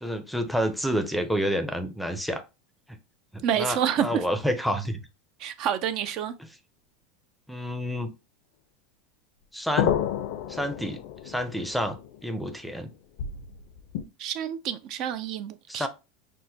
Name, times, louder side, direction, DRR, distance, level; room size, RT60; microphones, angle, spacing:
voice 1, 0.0-2.4 3.3-5.0 7.5-8.1 9.5-10.0 10.5-12.0 12.2-12.9 15.7-15.9, equal, ahead, 0.6 m, -29 dB
voice 2, 3.4-4.2 5.4-6.3 14.2-15.9, right 9 dB, 50° right, 0.4 m, -28 dB
sound 1, 9.8-12.8 13.2-14.0, left 10 dB, 65° left, 0.5 m, -31 dB
6.1 x 2.1 x 2.7 m
supercardioid pair, 140°, 0 cm